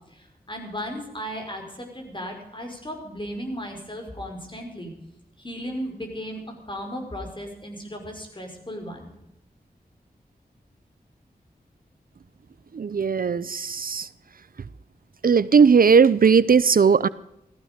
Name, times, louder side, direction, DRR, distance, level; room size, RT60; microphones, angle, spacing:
voice 1, 0.1-4.9 5.4-9.1, equal, 30° left, 3 dB, 5.0 m, -35 dB
voice 2, 12.7-14.1 15.2-17.1, right 6 dB, 65° right, 18 dB, 0.6 m, -17 dB
15.5 x 15.0 x 5.1 m, 0.84 s
wide cardioid pair, 70°, 16 cm